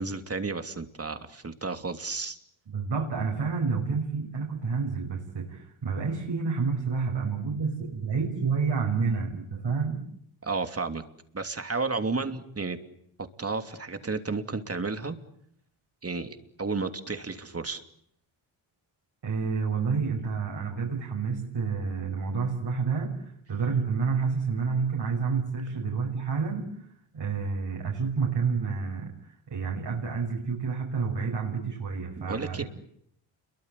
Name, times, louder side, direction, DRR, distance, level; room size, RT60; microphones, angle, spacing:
voice 1, 0.0-2.4 10.4-11.0 11.3-12.8 13.4-15.2 16.0-17.8 32.2-32.6, right 4 dB, 30° right, 8 dB, 3.0 m, -32 dB
voice 2, 2.7-10.0 19.2-26.9 27.1-32.6, right 5 dB, 55° right, 0 dB, 6.3 m, -29 dB
29.5 x 23.5 x 8.4 m, 0.70 s
cardioid pair, 80°, 48 cm